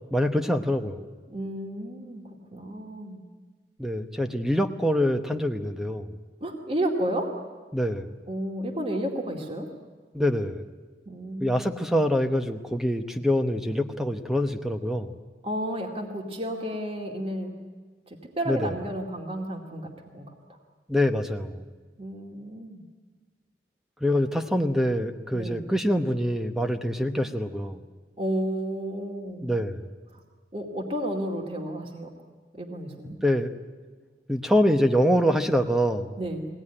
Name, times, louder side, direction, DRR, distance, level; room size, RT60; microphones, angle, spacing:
voice 1, 0.1-1.1 3.8-6.1 7.7-8.1 10.1-10.7 11.4-15.1 18.5-18.7 20.9-21.6 24.0-27.8 29.4-29.8 33.2-33.5 34.3-36.2, equal, ahead, 6 dB, 0.9 m, -25 dB
voice 2, 1.3-3.2 6.4-7.3 8.3-9.7 11.1-11.7 15.4-17.5 18.1-20.3 22.0-22.8 25.3-25.6 28.2-29.5 30.1-30.2 30.5-32.1 32.5-33.2 36.2-36.5, right 1 dB, 35° right, 1 dB, 2.2 m, -32 dB
23.0 x 17.5 x 9.9 m, 1.4 s
head